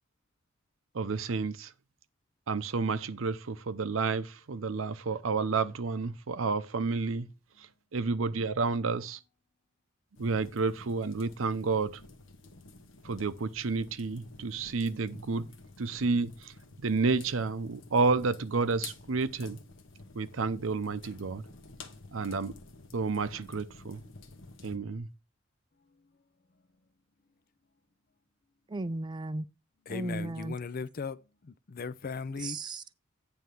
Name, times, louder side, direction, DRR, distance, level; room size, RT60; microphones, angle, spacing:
voice 1, 0.9-1.7 2.5-7.3 7.6-9.2 10.2-12.0 13.0-15.5 15.8-19.6 20.1-21.5 22.1-22.5 22.9-24.0 24.6-25.1, right 4 dB, 75° right, 0.7 m, -30 dB
sound 1, 10.1-24.8, left 4 dB, 65° left, 1.0 m, -51 dB
voice 2, 28.7-29.4 29.9-30.6 32.4-32.9, right 2 dB, 20° right, 0.4 m, -35 dB
voice 3, 29.9-32.6, left 5 dB, 45° left, 0.5 m, -38 dB
9.3 x 3.4 x 6.7 m
head